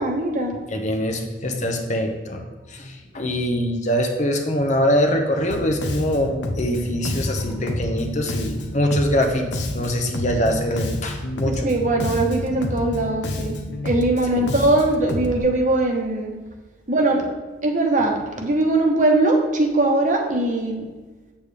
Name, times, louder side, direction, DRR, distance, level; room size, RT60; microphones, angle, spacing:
voice 1, 0.0-0.6 11.4-13.6 13.8-16.3 16.9-17.3 17.6-20.9, right 2 dB, 45° right, 2 dB, 1.1 m, -21 dB
voice 2, 0.7-2.4 2.7-6.3 6.6-11.7 14.4-14.5, equal, 40° left, 4 dB, 0.9 m, -23 dB
Bass guitar, 5.5-15.4, left 1 dB, 75° left, 0.8 m, -29 dB
8.1 x 7.1 x 3.4 m, 1.3 s
head